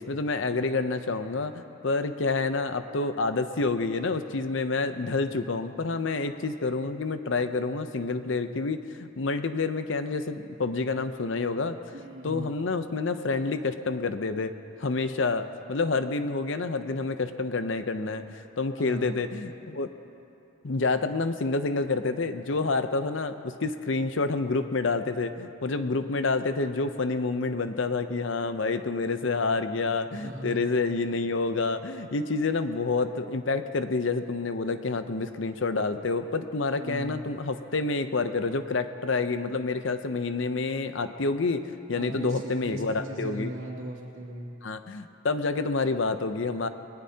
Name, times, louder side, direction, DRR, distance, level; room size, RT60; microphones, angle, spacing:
voice 1, 0.0-11.8 12.2-19.9 20.6-43.5 44.6-46.7, left 3 dB, 65° left, 9 dB, 0.7 m, -28 dB
voice 2, 11.9-12.5 18.8-19.2 30.1-30.7 36.8-37.2 41.9-44.5, right 1 dB, 80° right, -3 dB, 2.6 m, -38 dB
20.5 x 18.0 x 2.8 m, 2.7 s
head